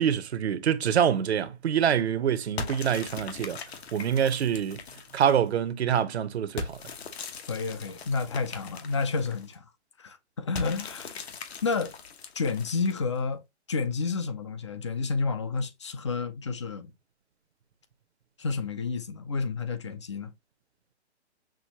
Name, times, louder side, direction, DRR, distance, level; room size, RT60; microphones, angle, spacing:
voice 1, 0.0-3.6 3.9-4.8 5.1-6.8, right 8 dB, 65° right, 0.8 m, -25 dB
sound 1, 2.6-5.5 6.6-9.6 10.5-13.2, left 5 dB, 65° left, 1.1 m, -40 dB
voice 2, 7.5-9.6 10.0-11.1 11.6-12.0 12.4-13.4 13.7-16.9 18.4-20.3, left 4 dB, 25° left, 0.4 m, -30 dB
6.2 x 2.6 x 2.8 m
hypercardioid pair, 150°, 35 cm